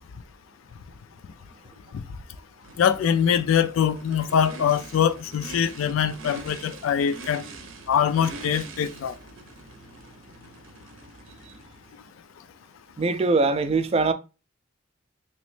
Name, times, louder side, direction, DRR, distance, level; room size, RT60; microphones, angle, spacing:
Race car auto racing / Idling / Accelerating revving vroom, 2.6-12.0, right 3 dB, 85° right, 0.7 m, -44 dB
voice 1, 2.8-7.4 7.9-9.1, left 8 dB, 85° left, 0.3 m, -23 dB
voice 2, 13.0-14.1, right 3 dB, 30° right, 0.3 m, -22 dB
3.1 x 3.0 x 3.1 m
head